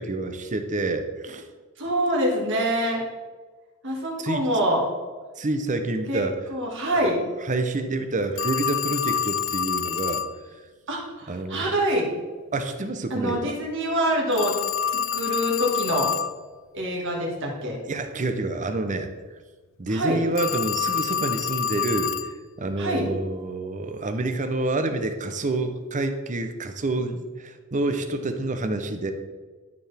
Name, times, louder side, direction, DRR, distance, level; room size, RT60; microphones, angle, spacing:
voice 1, 0.0-1.5 4.2-4.4 5.4-6.4 7.4-10.2 11.3-11.8 12.5-13.6 17.9-19.1 19.8-22.1 22.6-29.1, right 2 dB, 35° right, 7 dB, 0.7 m, -28 dB
voice 2, 1.8-3.0 3.8-4.8 6.1-6.2 6.5-7.2 10.9-12.1 13.1-14.5 14.9-16.1 16.7-17.8 19.9-20.2 22.8-23.1, equal, 60° right, -2 dB, 2.1 m, -25 dB
Telephone, 8.4-10.3 14.3-16.4 20.4-22.4, left 8 dB, 60° left, 0.3 m, -27 dB
12.5 x 4.7 x 3.5 m, 1.3 s
head